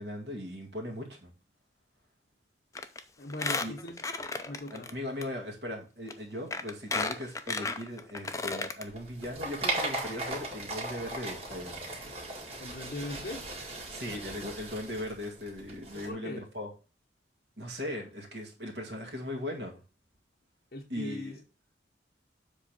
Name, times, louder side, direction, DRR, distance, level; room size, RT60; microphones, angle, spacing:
voice 1, 0.0-1.3 3.6-3.8 4.7-11.9 13.9-16.7 17.6-19.8 20.9-21.4, left 1 dB, 60° right, 2 dB, 1.9 m, -38 dB
Squeak, 2.7-3.0 3.3-4.9 5.2-5.3 6.1-6.2 6.5-8.8 9.2-9.3 9.5-9.6, left 3 dB, 15° left, 0.5 m, -33 dB
voice 2, 3.2-4.0 4.5-4.9 12.6-13.5 15.9-16.4 20.7-21.4, left 2 dB, 55° left, 0 dB, 0.8 m, -40 dB
sound 1, 8.9-16.1, right 2 dB, 30° right, 1.9 m, -37 dB
7.3 x 3.4 x 6.0 m, 0.33 s
head